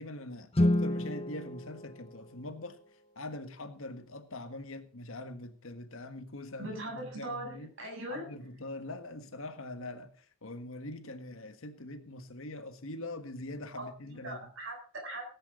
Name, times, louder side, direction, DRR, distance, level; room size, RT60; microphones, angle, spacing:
voice 1, 0.0-2.8 3.1-7.7 8.1-14.4, left 2 dB, 70° left, 1.6 m, -43 dB
Guitar, 0.5-3.1, left 1 dB, 25° left, 0.9 m, -31 dB
voice 2, 6.6-8.3 13.8-13.9 14.2-15.3, right 1 dB, 60° right, 7.5 m, -40 dB
18.0 x 10.0 x 3.8 m
head